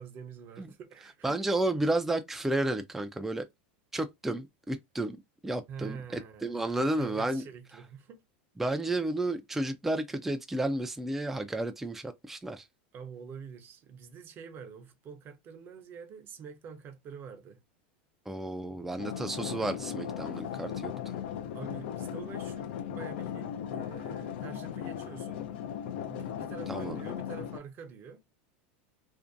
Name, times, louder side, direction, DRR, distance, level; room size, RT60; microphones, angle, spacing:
voice 1, 0.0-1.4 5.7-8.2 12.9-17.6 20.3-20.6 21.5-25.4 26.1-28.2, right 6 dB, 40° right, 0.6 m, -46 dB
voice 2, 1.2-3.5 3.9-7.4 8.6-12.7 18.3-21.1 26.7-27.0, right 2 dB, 5° right, 0.3 m, -32 dB
sound 1, 19.0-27.6, left 9 dB, 75° left, 0.4 m, -37 dB
2.5 x 2.1 x 2.4 m
supercardioid pair, 110°, 6 cm